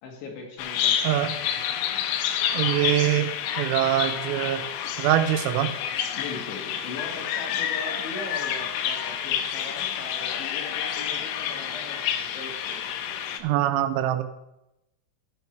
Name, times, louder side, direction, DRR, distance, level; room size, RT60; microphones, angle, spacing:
voice 1, 0.0-1.2 6.1-12.8, left 3 dB, 70° left, 0 dB, 3.9 m, -39 dB
Bird vocalization bird call bird song, 0.6-13.4, left 9 dB, 85° left, 3.1 m, -29 dB
voice 2, 2.5-3.3 3.6-4.6 5.0-5.7 13.4-14.2, right 12 dB, 90° right, 9 dB, 3.5 m, -23 dB
14.0 x 6.3 x 4.6 m, 0.88 s
omnidirectional pair, 5.8 m